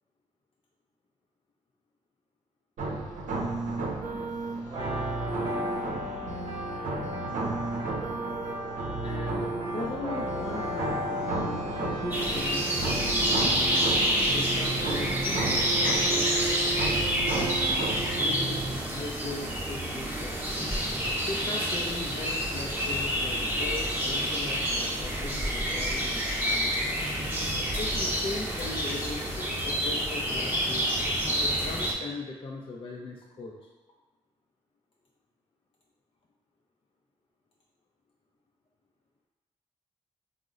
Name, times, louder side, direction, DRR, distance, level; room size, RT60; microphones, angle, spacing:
sound 1, 2.8-18.8, right 3 dB, 75° right, 0.6 m, -32 dB
sound 2, 4.7-14.3, left 1 dB, 40° right, 0.9 m, -37 dB
voice 1, 9.0-13.6 14.3-16.6 17.1-18.6 18.9-20.4 21.3-26.8 27.8-30.9 31.4-33.7, left 3 dB, 45° left, -2 dB, 0.4 m, -39 dB
sound 3, 12.1-31.9, equal, 15° right, 0.8 m, -28 dB
3.7 x 2.0 x 3.7 m, 1.2 s
supercardioid pair, 50°, 13 cm